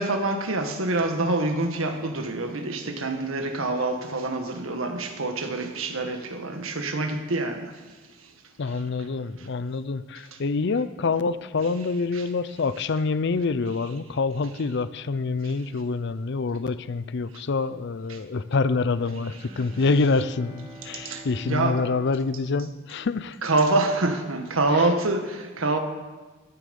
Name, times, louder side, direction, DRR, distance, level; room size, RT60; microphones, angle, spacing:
voice 1, 0.0-7.6 12.1-12.2 21.0-21.9 23.4-25.8, right 2 dB, 85° right, 5 dB, 1.5 m, -26 dB
voice 2, 8.6-23.4 24.7-24.9, left 4 dB, 60° left, 15 dB, 0.5 m, -26 dB
Bowed string instrument, 19.2-23.5, right 2 dB, 20° right, 4.4 m, -46 dB
14.0 x 10.0 x 5.3 m, 1.3 s
head